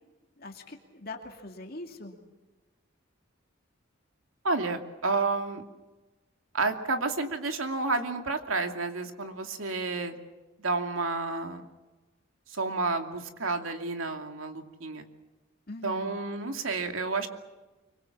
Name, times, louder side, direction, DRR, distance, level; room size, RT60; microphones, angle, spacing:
voice 1, 0.4-2.1 15.7-16.1, left 2 dB, 45° left, 2 dB, 2.6 m, -42 dB
voice 2, 4.4-5.6 6.5-10.1 10.6-11.6 12.5-15.1 15.8-17.3, right 3 dB, 85° right, 5 dB, 2.6 m, -30 dB
25.5 x 23.5 x 7.3 m, 1.2 s
head